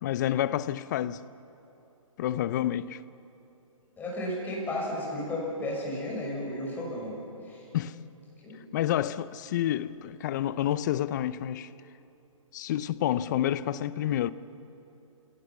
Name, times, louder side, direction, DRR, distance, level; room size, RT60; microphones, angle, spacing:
voice 1, 0.0-1.2 2.2-3.0 7.7-8.0 8.7-11.7 12.5-14.3, left 12 dB, 35° left, 0.6 m, -29 dB
voice 2, 4.0-7.2 7.4-7.7 8.4-8.6, left 1 dB, 10° left, 6.2 m, -33 dB
30.0 x 18.0 x 7.1 m
hypercardioid pair, 145°, 18 cm